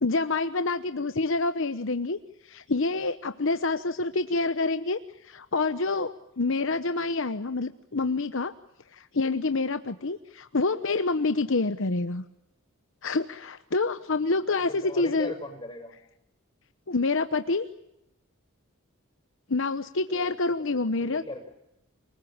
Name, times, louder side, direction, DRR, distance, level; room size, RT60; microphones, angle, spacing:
voice 1, 0.0-2.2 2.4-8.5 8.9-12.2 13.0-15.3 16.9-17.7 19.5-21.2, left 3 dB, 60° left, 10 dB, 1.0 m, -27 dB
voice 2, 14.7-15.9 20.1-20.3 20.7-21.5, left 1 dB, 20° left, 4 dB, 6.7 m, -39 dB
29.0 x 20.0 x 8.8 m, 0.85 s
head